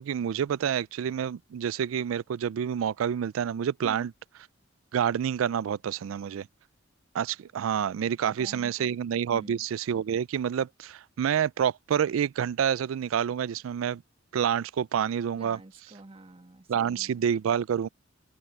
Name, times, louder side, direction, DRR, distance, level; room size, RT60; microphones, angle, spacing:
voice 1, 0.0-4.1 4.9-6.5 7.1-14.0 14.3-15.6 16.7-17.9, right 8 dB, 75° right, 0.3 m, -28 dB
voice 2, 8.2-9.0 9.3-9.6 15.4-17.2, right 2 dB, 30° right, 1.6 m, -47 dB
head